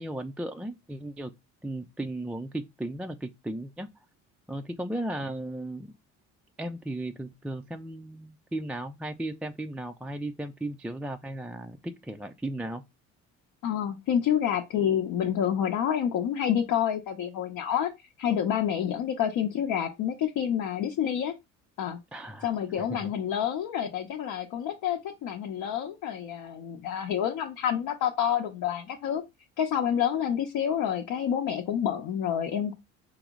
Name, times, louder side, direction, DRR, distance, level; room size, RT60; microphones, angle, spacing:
voice 1, 0.0-1.3 1.6-3.9 4.5-5.9 6.6-12.8 22.1-22.5 22.8-23.1, right 1 dB, 5° right, 0.3 m, -35 dB
voice 2, 13.6-21.3 21.8-22.0 22.4-29.2 29.6-32.7, left 9 dB, 60° left, 0.8 m, -28 dB
4.8 x 2.0 x 3.6 m
supercardioid pair, 70°, 36 cm